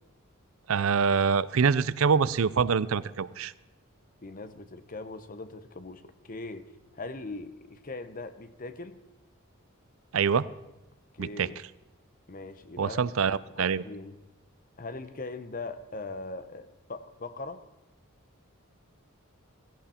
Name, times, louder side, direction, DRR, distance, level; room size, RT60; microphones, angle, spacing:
voice 1, 0.7-3.5 10.1-10.5 11.2-11.5 12.8-13.8, right 6 dB, 75° right, 18 dB, 0.5 m, -25 dB
voice 2, 4.2-6.6 6.9-9.0 11.1-11.6 12.3-14.2 14.8-17.6, left 3 dB, 40° left, 11 dB, 0.9 m, -40 dB
16.5 x 16.0 x 4.4 m, 0.99 s
head